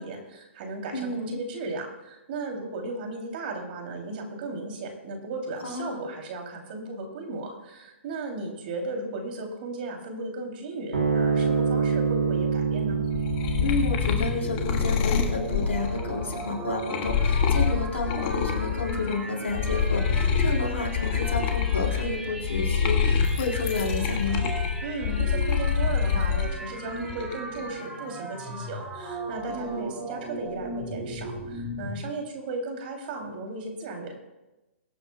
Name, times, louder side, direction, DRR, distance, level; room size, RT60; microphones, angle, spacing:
voice 1, 0.0-13.0 24.8-34.1, right 3 dB, 50° right, 2 dB, 3.1 m, -35 dB
voice 2, 0.9-1.4 5.6-6.0 13.6-24.4 29.5-29.9, left 3 dB, 80° left, 0 dB, 3.8 m, -31 dB
sound 1, 10.9-17.6, right 5 dB, 85° right, 3.6 m, -28 dB
sound 2, 12.9-19.2 19.5-26.5 26.9-27.6, left 6 dB, 40° left, 1.6 m, -26 dB
sound 3, 13.9-32.0, right 1 dB, 15° right, 3.0 m, -37 dB
22.5 x 9.3 x 2.3 m, 1.0 s
hypercardioid pair, 125°, 7 cm